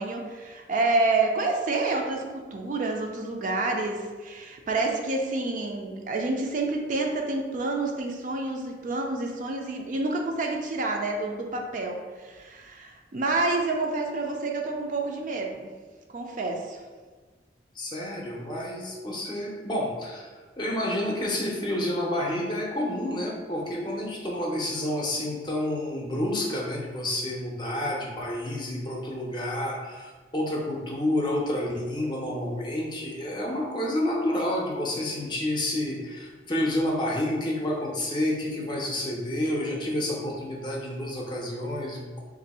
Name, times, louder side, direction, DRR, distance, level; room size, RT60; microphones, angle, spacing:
voice 1, 0.0-15.7 16.1-16.8, right 2 dB, 45° right, 2 dB, 0.4 m, -28 dB
voice 2, 17.8-20.3 20.6-42.2, left 1 dB, 25° left, -1 dB, 0.6 m, -29 dB
3.0 x 2.6 x 4.1 m, 1.4 s
head